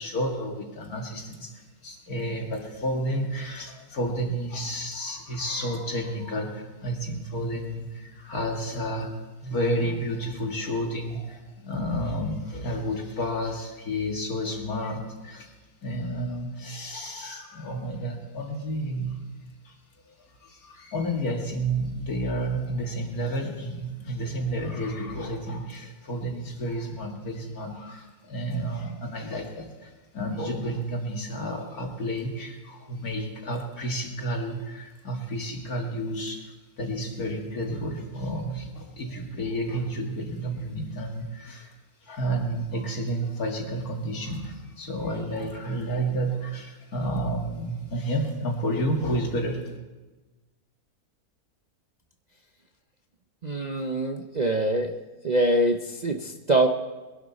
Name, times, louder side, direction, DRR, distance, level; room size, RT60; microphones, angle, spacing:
voice 1, 0.0-15.5 15.8-19.2 19.6-19.7 20.2-41.7 42.0-49.6, right 1 dB, 70° left, 1 dB, 2.5 m, -31 dB
voice 2, 53.4-54.9 55.2-56.7, right 1 dB, 40° right, 2 dB, 0.6 m, -24 dB
22.0 x 11.5 x 4.1 m, 1.2 s
omnidirectional pair, 1.6 m